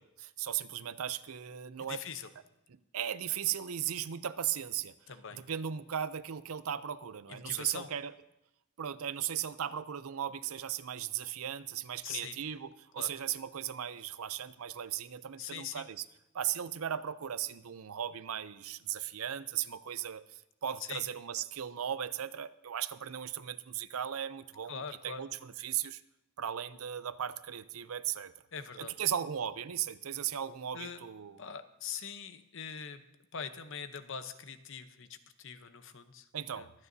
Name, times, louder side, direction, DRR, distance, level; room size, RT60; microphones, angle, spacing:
voice 1, 0.0-2.0 2.7-4.9 5.3-8.1 8.8-16.0 16.3-26.0 26.4-28.3 28.8-31.4 36.3-36.7, right 10 dB, 75° right, 14 dB, 0.5 m, -37 dB
voice 2, 1.8-2.3 5.1-5.4 7.3-7.9 12.0-12.4 13.0-13.1 15.4-15.9 20.8-21.0 24.7-25.2 28.5-28.9 30.7-31.0 31.4-33.0 33.3-36.3 36.5-36.7, left 7 dB, 60° left, 10 dB, 0.8 m, -42 dB
24.0 x 9.6 x 2.7 m, 0.87 s
head